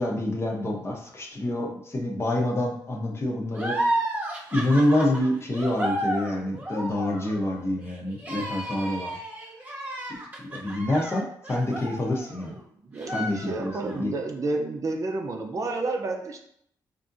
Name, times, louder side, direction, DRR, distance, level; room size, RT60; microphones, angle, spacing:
voice 1, 0.0-3.8 4.5-9.2 10.1-10.2 10.5-12.5 13.1-14.1, left 1 dB, 35° left, 0 dB, 0.8 m, -27 dB
sound 1, 3.5-12.6 13.0-14.0, right 1 dB, 20° right, 0.9 m, -32 dB
voice 2, 12.8-16.4, right 2 dB, 45° right, 2 dB, 0.6 m, -30 dB
3.4 x 2.6 x 2.6 m, 0.69 s
cardioid pair, 70°, 8 cm